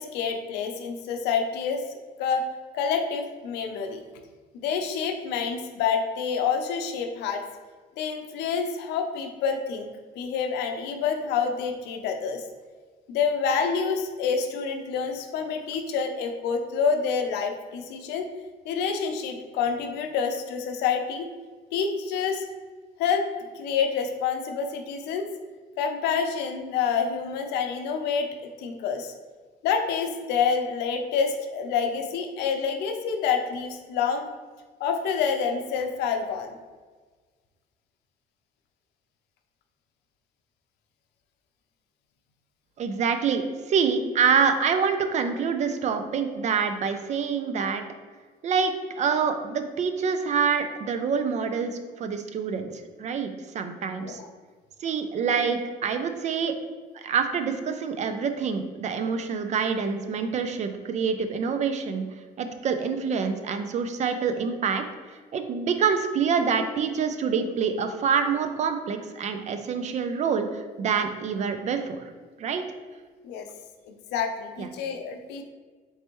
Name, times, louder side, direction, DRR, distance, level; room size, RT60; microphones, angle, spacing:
voice 1, 0.0-1.8 2.2-2.4 2.7-4.0 4.5-7.4 8.0-12.5 13.1-18.3 18.7-21.3 21.7-22.5 23.0-25.3 25.8-28.3 28.6-29.1 29.6-34.3 34.8-36.5 54.0-54.3 73.2-73.5 73.9-75.4, left 6 dB, 90° left, 5 dB, 0.5 m, -27 dB
voice 2, 42.8-47.8 48.4-52.7 53.0-54.2 54.8-56.5 56.9-62.0 62.4-64.8 65.3-72.1 72.4-72.6 74.6-74.7, right 6 dB, 45° right, 7 dB, 0.4 m, -26 dB
4.3 x 3.3 x 3.0 m, 1.4 s
cardioid pair, 110°, 17 cm